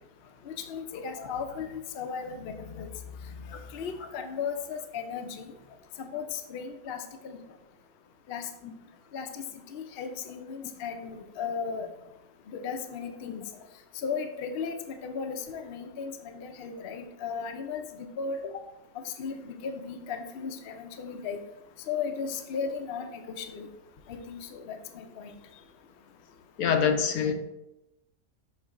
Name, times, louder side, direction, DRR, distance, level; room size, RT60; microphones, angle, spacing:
voice 1, 0.5-2.9 3.7-5.5 6.0-7.4 8.3-8.5 9.1-9.4 9.7-11.9 12.5-13.5 14.0-17.9 18.2-18.4 19.0-21.4 21.9-23.7 24.1-25.3, left 6 dB, 55° left, 6 dB, 0.7 m, -36 dB
voice 2, 26.6-27.3, left 7 dB, 85° left, 6 dB, 1.2 m, -26 dB
6.4 x 3.3 x 4.7 m, 0.92 s
omnidirectional pair, 1.5 m